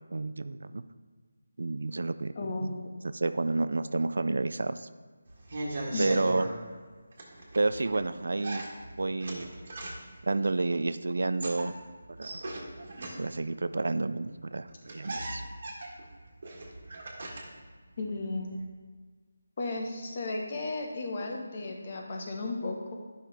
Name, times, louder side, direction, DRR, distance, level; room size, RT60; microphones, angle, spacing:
voice 1, 0.1-0.8 1.6-2.3 2.6-2.8 3.0-4.9 6.0-6.5 7.6-8.7 9.0-9.5 10.2-11.7 12.2-12.4 13.2-15.4, right 3 dB, 70° right, 12 dB, 0.4 m, -30 dB
voice 2, 2.3-3.0 5.9-6.2 18.0-18.5 19.6-22.9, left 2 dB, 35° left, 1 dB, 1.1 m, -34 dB
sound 1, 5.3-6.5 7.1-8.0 8.4-10.2 11.2-13.5 14.4-14.5 14.7-17.6 17.9-18.6, right 2 dB, 50° right, 1.5 m, -38 dB
10.0 x 5.7 x 3.4 m, 1.5 s
figure-of-eight pair, 165°, 0 cm